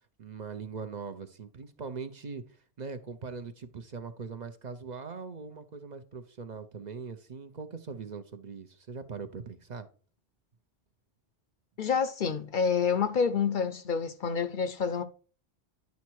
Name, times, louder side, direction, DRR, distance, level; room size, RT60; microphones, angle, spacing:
voice 1, 0.2-9.9, right 5 dB, 45° right, 0.7 m, -41 dB
voice 2, 11.8-15.0, left 6 dB, 55° left, 0.7 m, -28 dB
10.5 x 4.2 x 4.6 m
omnidirectional pair, 1.1 m